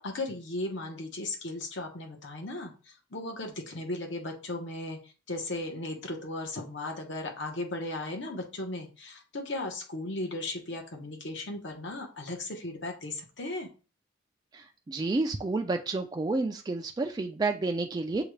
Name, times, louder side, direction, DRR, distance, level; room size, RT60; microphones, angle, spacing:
voice 1, 0.0-13.7, left 2 dB, 75° left, 2 dB, 1.1 m, -36 dB
voice 2, 14.5-18.2, right 3 dB, 20° right, 4 dB, 0.3 m, -30 dB
6.7 x 2.3 x 3.2 m, 0.35 s
head